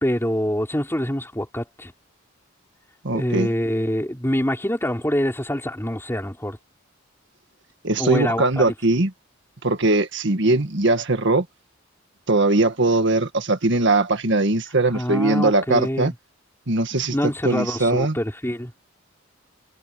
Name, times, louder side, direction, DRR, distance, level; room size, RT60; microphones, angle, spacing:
voice 1, 0.0-1.9 3.1-6.6 8.0-8.6 14.9-16.1 16.9-18.7, equal, 10° left, 3.8 m, -25 dB
voice 2, 3.0-3.5 7.8-9.1 9.6-11.5 12.3-16.1 16.7-18.2, right 2 dB, 60° right, 1.8 m, -20 dB
head